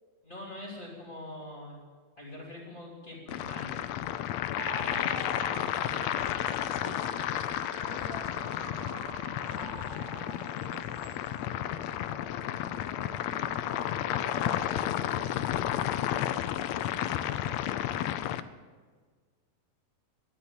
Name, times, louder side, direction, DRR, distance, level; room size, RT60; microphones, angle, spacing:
voice 1, 0.2-1.7 2.2-3.8 4.8-5.2, left 1 dB, 15° left, -5 dB, 3.3 m, -43 dB
sound 1, 3.3-18.4, left 12 dB, 85° left, 1.5 m, -32 dB
sound 2, 4.6-15.3, right 4 dB, 55° right, 2.5 m, -46 dB
voice 2, 6.5-11.4 11.7-13.7 14.1-15.6 17.9-18.4, right 3 dB, 75° right, 1 dB, 3.6 m, -51 dB
12.5 x 10.5 x 9.1 m, 1.5 s
omnidirectional pair, 3.7 m